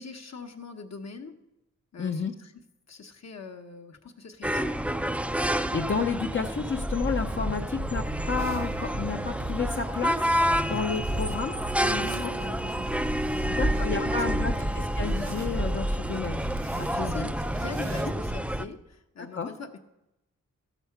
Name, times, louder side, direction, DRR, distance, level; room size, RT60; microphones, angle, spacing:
voice 1, 0.0-1.3 1.9-2.5 2.9-4.7 10.6-10.8 12.0-14.5 16.6-19.8, left 4 dB, 60° left, 4 dB, 1.0 m, -42 dB
voice 2, 2.0-2.3 5.5-12.3 13.5-16.4 16.8-17.3 19.2-19.5, left 5 dB, 40° left, 3 dB, 0.6 m, -31 dB
sound 1, 4.4-18.6, equal, 5° right, 0.4 m, -28 dB
sound 2, 7.7-18.4, right 7 dB, 90° right, 3.4 m, -44 dB
sound 3, 8.4-18.1, right 4 dB, 65° right, 1.3 m, -52 dB
13.0 x 7.0 x 5.8 m, 0.90 s
wide cardioid pair, 90°, 30 cm